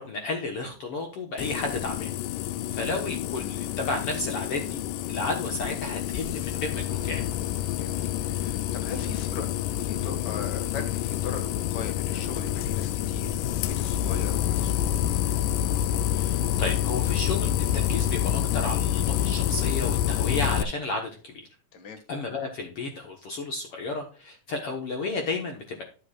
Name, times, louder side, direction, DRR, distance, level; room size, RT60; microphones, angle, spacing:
voice 1, 0.0-2.1 2.7-4.8 5.1-7.2 16.1-21.5 22.1-25.8, left 3 dB, 60° left, 1.7 m, -32 dB
sound 1, 1.4-20.6, left 11 dB, 80° left, 2.1 m, -28 dB
voice 2, 7.7-9.5 9.8-14.9 21.7-22.0, left 5 dB, 40° left, 1.6 m, -40 dB
12.0 x 7.8 x 2.4 m
omnidirectional pair, 4.0 m